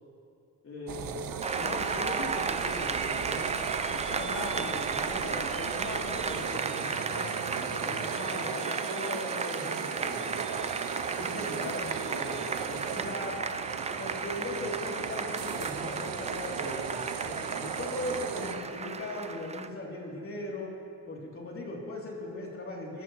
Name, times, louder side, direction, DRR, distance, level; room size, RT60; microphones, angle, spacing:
voice 1, 0.6-1.3 1.5-10.5 11.1-13.4 14.0-20.8 21.1-23.0, left 2 dB, 40° left, -3 dB, 3.2 m, -39 dB
sound 1, 0.9-18.5, right 7 dB, 75° right, 1.0 m, -37 dB
Applause, 1.4-19.7, right 4 dB, 20° right, 0.5 m, -34 dB
21.0 x 13.5 x 3.2 m, 2.6 s
cardioid pair, 115°, 34 cm